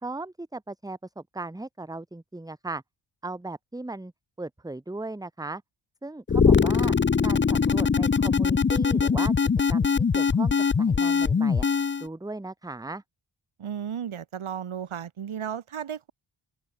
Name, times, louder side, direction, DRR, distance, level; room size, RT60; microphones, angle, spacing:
voice 1, 0.0-2.8 3.2-4.1 4.4-5.6 6.0-6.9 7.2-9.3 9.7-11.6 12.0-13.0, right 2 dB, 10° right, 0.9 m, -37 dB
sound 1, 6.3-12.1, left 5 dB, 25° left, 0.5 m, -22 dB
voice 2, 13.6-16.1, right 8 dB, 75° right, 1.5 m, -34 dB
open air
wide cardioid pair, 100°, 49 cm